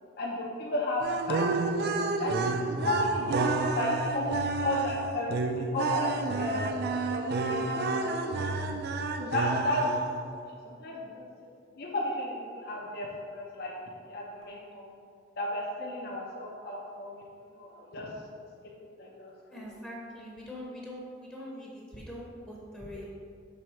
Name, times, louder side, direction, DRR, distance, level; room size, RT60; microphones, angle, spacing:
voice 1, 0.2-2.4 2.8-3.4 3.7-6.1 6.4-6.7 7.1-8.1 8.5-8.7 9.2-9.9 10.6-11.2 11.8-13.7 14.1-14.9 15.4-17.2 17.5-18.1 19.0-19.7, left 1 dB, 55° left, -4 dB, 0.6 m, -33 dB
sound 1, 1.0-10.2, right 3 dB, 55° right, 0.4 m, -30 dB
voice 2, 19.5-23.1, equal, 5° left, -4 dB, 0.7 m, -43 dB
6.3 x 3.5 x 4.4 m, 2.4 s
head